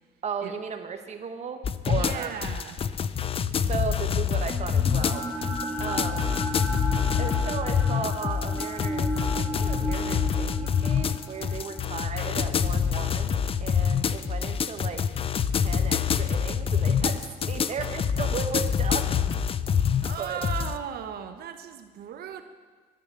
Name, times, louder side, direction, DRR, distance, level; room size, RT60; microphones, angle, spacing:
voice 1, 0.2-1.6 1.9-2.4 3.7-5.5 5.8-6.3 7.2-9.1 9.4-15.0 15.6-19.3 20.2-20.4, right 6 dB, 40° right, 7 dB, 1.3 m, -35 dB
sound 1, 1.6-20.8, left 7 dB, 35° left, 0.5 m, -26 dB
voice 2, 1.9-2.8 20.0-22.4, right 8 dB, 65° right, 8 dB, 1.0 m, -37 dB
sound 2, 4.5-14.6, right 2 dB, 5° left, 3.1 m, -35 dB
12.5 x 10.5 x 6.8 m, 1.5 s
cardioid pair, 110°, 17 cm